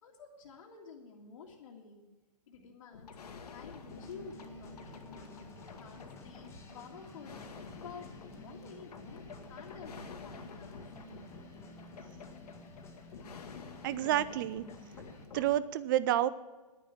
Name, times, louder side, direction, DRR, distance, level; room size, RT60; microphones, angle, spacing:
voice 1, 0.0-2.1 2.5-5.3 5.8-7.5 7.8-10.9, left 5 dB, 50° left, -4 dB, 2.0 m, -51 dB
sound 1, 2.9-15.6, left 5 dB, 65° left, 1.8 m, -50 dB
sound 2, 3.9-15.2, left 1 dB, 10° left, 1.9 m, -52 dB
voice 2, 13.8-14.6 15.3-16.3, right 13 dB, 30° right, 17 dB, 0.5 m, -29 dB
11.0 x 9.9 x 7.3 m, 1.3 s
hypercardioid pair, 145°, 21 cm